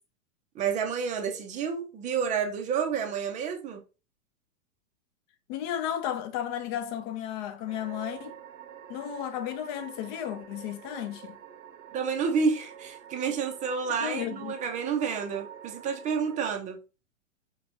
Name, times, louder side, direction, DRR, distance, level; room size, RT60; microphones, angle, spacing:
voice 1, 0.5-3.8 11.9-16.8, right 6 dB, 20° right, 0.5 m, -29 dB
voice 2, 5.5-8.4 8.9-11.4 14.0-14.5, left 10 dB, 35° left, 0.7 m, -34 dB
sound 1, 7.7-16.5, right 9 dB, 65° right, 0.8 m, -47 dB
4.5 x 2.8 x 2.8 m
hypercardioid pair, 115°, 41 cm